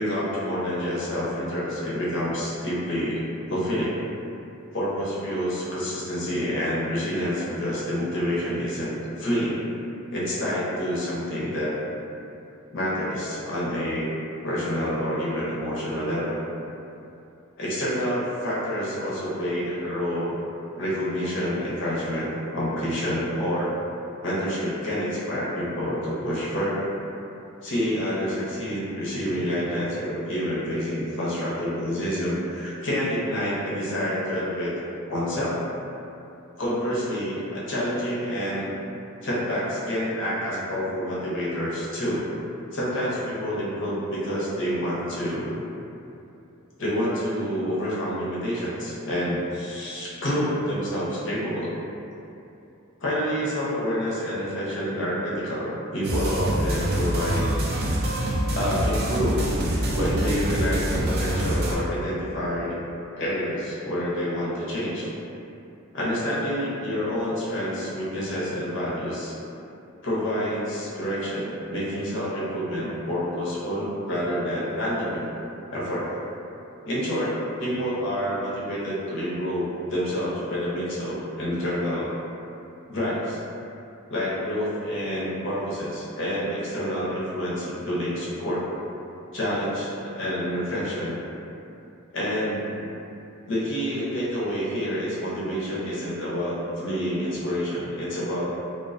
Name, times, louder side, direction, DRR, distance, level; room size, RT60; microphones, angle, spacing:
voice 1, 0.0-3.2 3.5-3.9 4.7-9.6 10.1-11.7 12.7-14.1 14.4-16.5 17.6-20.4 20.8-23.7 24.2-26.9 27.6-34.7 35.1-35.6 36.6-38.7 39.2-42.2 42.8-45.6 46.8-51.8 53.0-57.5 58.5-59.5 59.9-62.8 63.2-65.1 65.9-69.3 70.0-75.2 75.7-76.2 76.8-77.3 77.6-82.1 82.9-83.4 84.1-88.6 89.3-91.2 92.1-92.8 93.5-98.5, equal, 60° left, -8 dB, 0.7 m, -28 dB
sound 1, 56.0-61.8, right 1 dB, 50° right, 0.3 m, -25 dB
2.4 x 2.2 x 2.4 m, 2.7 s
head